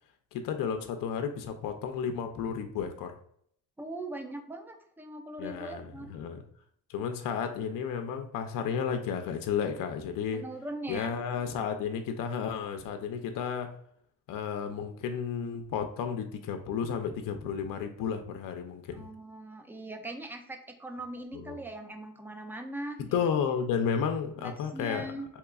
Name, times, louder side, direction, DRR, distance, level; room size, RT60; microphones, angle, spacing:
voice 1, 0.3-3.1 5.4-6.4 6.9-10.4 10.9-13.7 14.3-19.1 21.3-21.6 23.0-25.1, left 7 dB, 60° left, 6 dB, 0.5 m, -32 dB
voice 2, 3.8-6.1 10.3-11.2 18.9-23.2 24.4-25.3, right 1 dB, 5° right, 5 dB, 0.4 m, -40 dB
3.7 x 2.9 x 2.3 m, 0.66 s
cardioid pair, 100°, 37 cm